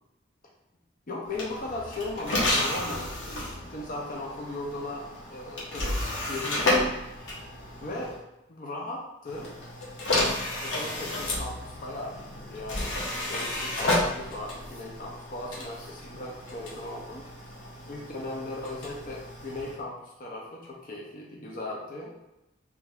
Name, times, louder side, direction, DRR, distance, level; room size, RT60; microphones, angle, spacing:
voice 1, 1.1-5.0 5.3-7.0 7.8-8.2 8.5-9.5 10.6-17.2 17.9-22.2, left 2 dB, 45° left, -2 dB, 0.6 m, -38 dB
sound 1, 1.3-8.2 9.2-19.8, left 1 dB, 85° left, 1.1 m, -32 dB
3.3 x 3.0 x 3.6 m, 0.93 s
head